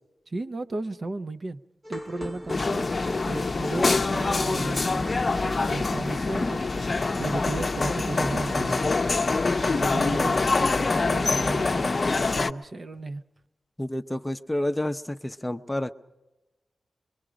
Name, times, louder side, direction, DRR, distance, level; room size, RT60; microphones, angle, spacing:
voice 1, 0.3-1.6 1.9-3.0 3.3-8.9 9.3-13.2, right 2 dB, 45° right, 0.7 m, -35 dB
sound 1, 1.8-9.3, left 1 dB, 15° right, 0.9 m, -40 dB
sound 2, 2.5-12.5, left 3 dB, 40° left, 0.6 m, -25 dB
voice 2, 13.8-15.9, left 1 dB, 10° left, 0.7 m, -29 dB
25.0 x 23.0 x 5.0 m
wide cardioid pair, 80°, 0 cm